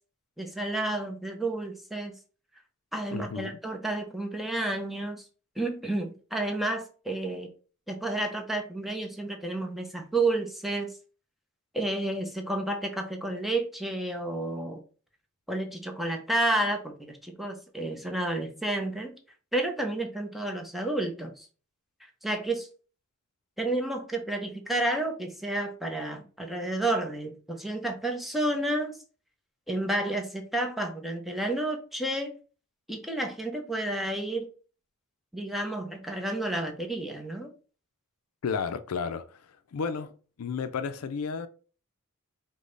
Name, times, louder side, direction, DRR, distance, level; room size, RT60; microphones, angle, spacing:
voice 1, 0.4-2.2 2.9-5.2 5.6-7.5 7.9-11.0 11.7-14.8 15.5-19.2 19.5-21.5 22.2-22.7 23.6-29.0 29.7-32.3 32.9-34.5 35.3-37.5, right 2 dB, ahead, 0.7 m, -31 dB
voice 2, 3.1-3.5 38.4-39.4 39.7-41.5, left 5 dB, 75° left, 0.4 m, -32 dB
5.1 x 2.1 x 3.8 m
head